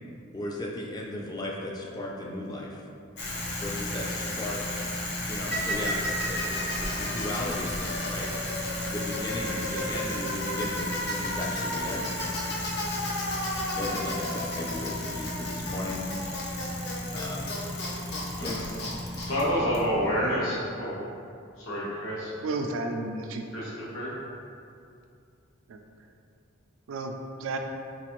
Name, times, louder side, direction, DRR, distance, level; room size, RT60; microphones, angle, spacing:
voice 1, 0.3-2.8 3.6-4.8 5.3-8.3 8.9-12.1 13.7-16.0 17.1-17.5 18.4-18.6, left 1 dB, 20° left, -2 dB, 0.4 m, -36 dB
Bicycle, 3.2-20.2, left 1 dB, 55° left, 0.6 m, -32 dB
voice 2, 18.3-18.7 19.2-21.0 21.6-22.3 23.5-24.1, equal, 85° left, -7 dB, 1.0 m, -29 dB
voice 3, 22.4-23.5 25.7-25.8 26.9-27.6, right 2 dB, 75° right, 4 dB, 0.3 m, -32 dB
4.0 x 2.5 x 2.9 m, 2.5 s
head